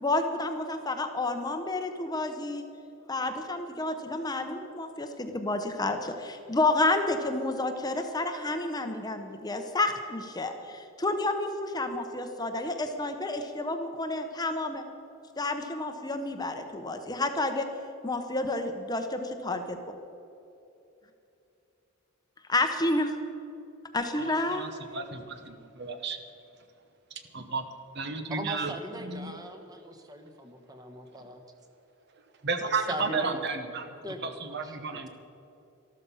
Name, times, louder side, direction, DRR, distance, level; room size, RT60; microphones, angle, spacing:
voice 1, 0.0-2.6 3.1-14.8 15.4-17.7 18.0-19.8 22.5-23.2 23.9-24.7, left 2 dB, 20° left, 6 dB, 0.8 m, -30 dB
voice 2, 24.2-26.2 27.3-27.6 28.0-28.7 29.0-29.4 32.4-33.9 34.2-35.1, right 4 dB, 50° right, 8 dB, 1.0 m, -33 dB
voice 3, 28.3-31.4 32.6-33.4 34.0-35.0, right 1 dB, 20° right, 5 dB, 1.2 m, -40 dB
13.5 x 13.0 x 5.6 m, 2.8 s
head